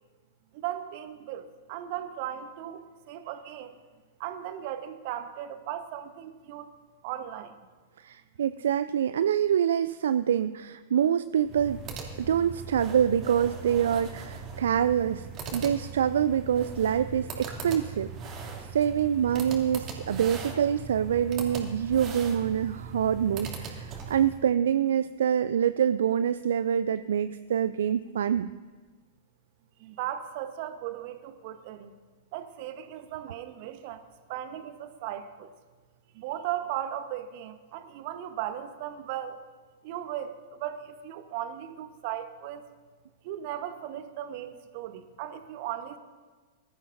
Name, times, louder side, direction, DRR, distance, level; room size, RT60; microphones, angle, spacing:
voice 1, 0.5-3.8 4.2-6.7 7.0-7.6 29.8-31.9 32.3-34.0 34.3-35.5 36.1-39.4 39.8-42.7 43.2-46.0, right 11 dB, 50° right, 9 dB, 1.1 m, -37 dB
voice 2, 8.0-11.8 12.2-15.3 15.5-18.5 18.7-28.5, right 9 dB, 65° right, 13 dB, 0.3 m, -26 dB
sound 1, 11.4-24.4, right 5 dB, 35° right, 2.7 m, -39 dB
21.5 x 13.0 x 2.7 m, 1.4 s
figure-of-eight pair, 100°, 0 cm